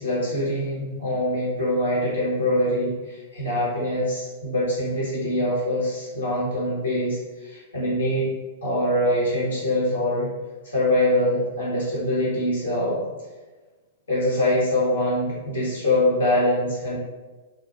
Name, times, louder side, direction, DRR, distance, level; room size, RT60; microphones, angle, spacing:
voice 1, 0.0-8.3 8.6-10.3 10.6-13.0 14.1-17.0, left 1 dB, 70° left, -7 dB, 1.3 m, -24 dB
2.6 x 2.3 x 2.5 m, 1.2 s
figure-of-eight pair, 105°, 0 cm